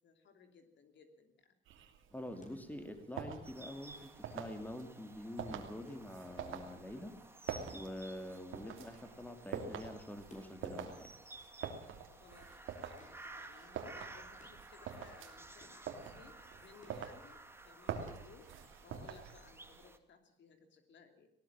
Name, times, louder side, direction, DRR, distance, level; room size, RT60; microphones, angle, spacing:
voice 1, 0.0-1.6 12.1-18.5 18.8-21.3, left 5 dB, 65° left, 7 dB, 3.0 m, -61 dB
sound 1, 1.7-19.9, right 7 dB, 85° right, 2.8 m, -47 dB
voice 2, 2.1-7.1 7.7-11.1, left 1 dB, 10° left, 7 dB, 2.8 m, -46 dB
sound 2, 2.4-17.7 18.9-19.0, left 2 dB, 40° left, 6.7 m, -67 dB
sound 3, 3.4-20.0, right 2 dB, 10° right, 2.0 m, -55 dB
19.0 x 18.5 x 7.5 m, 0.71 s
cardioid pair, 90°, 20 cm